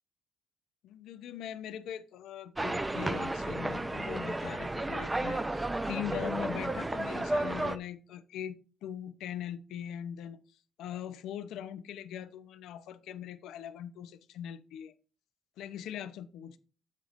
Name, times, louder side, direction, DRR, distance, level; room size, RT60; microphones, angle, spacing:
voice 1, 0.8-5.4 5.9-10.4 10.8-14.9 15.6-16.6, left 10 dB, 85° left, 0.7 m, -41 dB
sound 1, 2.6-7.8, right 2 dB, 15° right, 0.6 m, -33 dB
8.2 x 8.2 x 2.6 m
cardioid pair, 90°, 0 cm